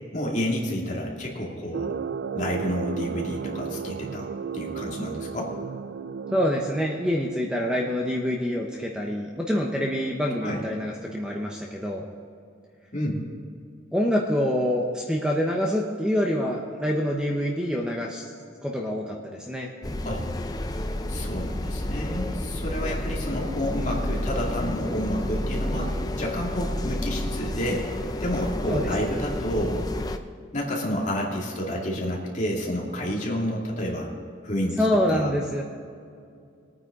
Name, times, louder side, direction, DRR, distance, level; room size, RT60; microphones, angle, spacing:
voice 1, 0.1-2.0 2.3-5.5 10.4-10.6 12.9-13.2 20.0-20.2 21.1-27.9 28.2-29.9 30.5-34.1 34.4-34.8 35.1-35.3, equal, 40° left, -2 dB, 2.3 m, -30 dB
sound 1, 1.7-7.5, right 6 dB, 60° right, 0.3 m, -34 dB
voice 2, 6.3-12.0 13.9-18.3 18.6-19.7 22.8-23.0 28.7-28.9 34.8-35.6, equal, 5° right, -1 dB, 0.9 m, -26 dB
sound 2, 19.8-30.2, left 1 dB, 20° left, 0.5 m, -30 dB
21.5 x 9.4 x 3.8 m, 2.3 s
head